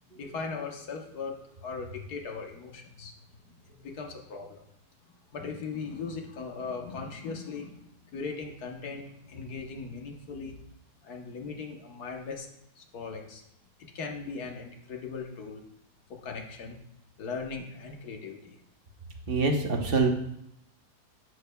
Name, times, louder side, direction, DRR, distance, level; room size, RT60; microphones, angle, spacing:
voice 1, 0.1-1.3 1.6-3.1 3.4-4.6 5.3-10.5 11.0-12.5 12.8-13.4 13.9-15.6 16.1-16.8 17.2-18.6, left 4 dB, 70° left, 2 dB, 1.6 m, -39 dB
voice 2, 19.3-20.1, right 3 dB, 45° right, 3 dB, 0.9 m, -25 dB
11.0 x 7.2 x 2.2 m, 0.78 s
omnidirectional pair, 1.7 m